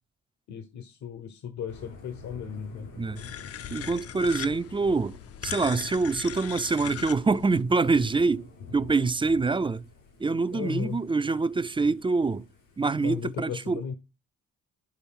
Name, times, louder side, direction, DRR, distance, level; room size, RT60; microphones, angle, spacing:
voice 1, 0.5-2.9 10.5-11.0 13.0-13.9, left 7 dB, 70° left, 1.2 m, -35 dB
Thunder / Rain, 1.7-13.4, left 4 dB, 85° left, 5.8 m, -49 dB
sound 1, 3.2-7.6, left 10 dB, 50° left, 0.6 m, -39 dB
voice 2, 3.7-8.5 8.7-9.8 10.2-12.5 12.8-13.8, right 4 dB, 15° right, 0.4 m, -25 dB
11.5 x 3.9 x 5.6 m
cardioid pair, 90°, 30 cm